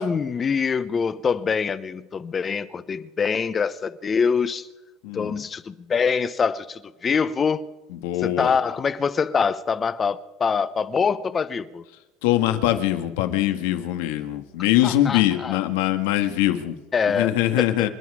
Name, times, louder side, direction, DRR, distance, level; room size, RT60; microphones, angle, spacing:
voice 1, 0.0-4.7 5.1-7.7 8.2-11.8 14.8-15.6 16.9-17.9, left 6 dB, 25° left, 0.8 m, -24 dB
voice 2, 5.0-5.4 7.9-8.6 12.2-16.8 17.1-17.9, left 14 dB, 90° left, 1.6 m, -22 dB
26.5 x 11.0 x 4.9 m
cardioid pair, 150°, 0 cm